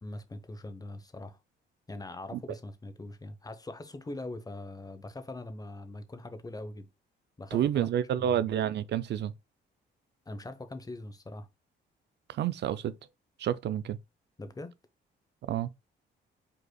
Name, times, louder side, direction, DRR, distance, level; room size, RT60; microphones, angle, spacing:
voice 1, 0.0-1.4 1.9-6.9 7.4-7.9 8.2-8.5 10.3-11.5 14.4-14.7, left 2 dB, 20° left, 0.9 m, -42 dB
voice 2, 7.5-9.3 12.3-12.9 13.4-14.0 15.4-15.7, right 10 dB, 60° right, 0.4 m, -29 dB
5.3 x 4.1 x 2.2 m
cardioid pair, 90°, 20 cm